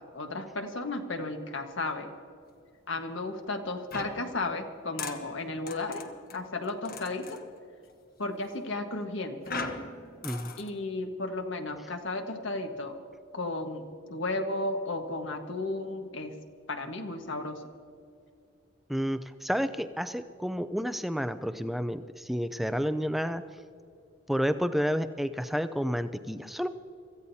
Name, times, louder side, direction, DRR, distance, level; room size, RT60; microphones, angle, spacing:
voice 1, 0.0-2.1 2.9-6.1 6.3-7.4 8.2-9.5 10.6-13.0 13.3-16.3 16.7-17.6, left 2 dB, 75° left, 4 dB, 1.5 m, -34 dB
sound 1, 3.9-7.5 9.5-10.7, left 3 dB, 45° left, 1.2 m, -40 dB
voice 2, 18.9-23.4 24.3-26.7, equal, ahead, 10 dB, 0.4 m, -30 dB
25.5 x 15.0 x 2.8 m, 2.5 s
head